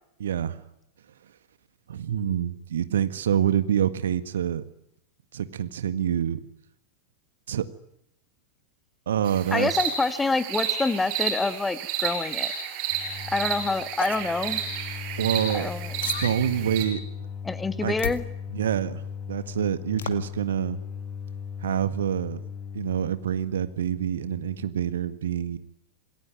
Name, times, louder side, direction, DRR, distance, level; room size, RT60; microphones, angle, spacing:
voice 1, 0.2-0.6 1.9-4.6 5.3-6.4 7.5-7.7 9.1-9.8 15.2-15.7 16.2-17.0 17.8-17.9 18.5-19.0 19.3-20.8 21.6-22.4 22.7-25.6, right 9 dB, 65° right, 12 dB, 1.8 m, -26 dB
sound 1, 9.3-16.8, right 8 dB, 40° right, 6.0 m, -31 dB
voice 2, 9.5-12.5 13.3-14.6 15.5-15.9 17.5-18.2, left 3 dB, 10° left, 12 dB, 1.8 m, -26 dB
sound 2, 12.9-24.7, left 6 dB, 30° left, 1.9 m, -38 dB
sound 3, 14.0-14.2 16.0-16.4 18.0-18.2 20.0-20.2, left 8 dB, 60° left, 2.1 m, -32 dB
28.0 x 21.0 x 9.7 m, 0.80 s
figure-of-eight pair, 90°, 0 cm